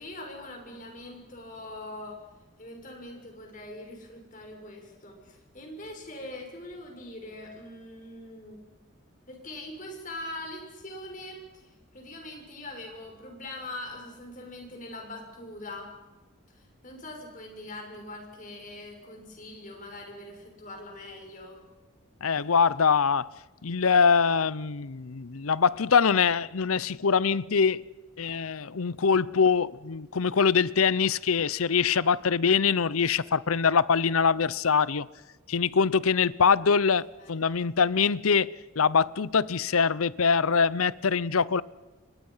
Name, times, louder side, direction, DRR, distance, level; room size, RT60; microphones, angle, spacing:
voice 1, 0.0-2.2 2.6-8.6 9.3-15.9 16.5-21.6 37.2-37.4, left 1 dB, 40° left, 6.2 m, -42 dB
voice 2, 22.2-23.3 23.6-27.9 28.2-35.1 35.5-41.6, left 6 dB, 90° left, 0.7 m, -23 dB
29.0 x 24.0 x 5.7 m
head